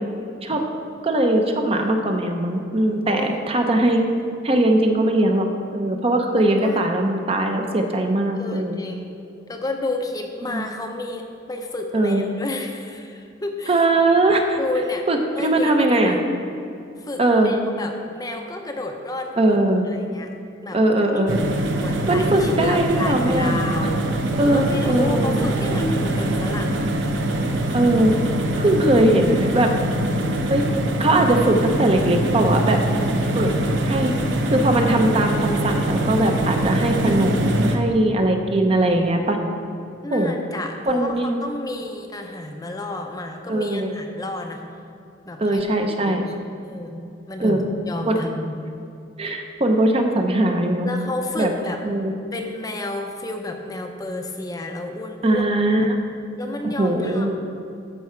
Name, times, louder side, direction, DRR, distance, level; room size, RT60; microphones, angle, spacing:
voice 1, 1.0-4.0 4.4-5.5 5.7-8.8 10.4-10.7 11.9-12.2 13.7-14.6 15.1-16.2 17.2-17.5 19.4-19.9 20.7-21.4 22.1-23.5 24.4-25.3 25.7-25.9 27.7-28.2 28.6-29.7 30.5-30.6 31.0-32.8 33.3-33.5 33.8-34.1 34.5-39.4 40.1-40.3 40.9-41.4 43.5-44.0 45.4-46.2 47.4-47.6 48.1-48.2 49.2-50.9 51.4-51.5 51.8-52.1 55.2-56.0 56.6-57.3, right 1 dB, 30° right, 4 dB, 0.7 m, -20 dB
voice 2, 3.0-3.4 6.4-6.8 8.4-9.1 9.5-13.9 14.6-15.1 15.3-16.2 17.0-19.6 19.9-20.3 20.6-20.8 21.8-24.0 24.4-26.9 40.0-44.6 45.3-46.4 46.6-48.5 50.8-51.8 52.3-55.4 56.4-57.3, left 2 dB, 20° left, 3 dB, 0.6 m, -31 dB
sound 1, 21.3-37.8, right 1 dB, 70° right, 0.7 m, -23 dB
13.0 x 4.8 x 4.4 m, 2.7 s
head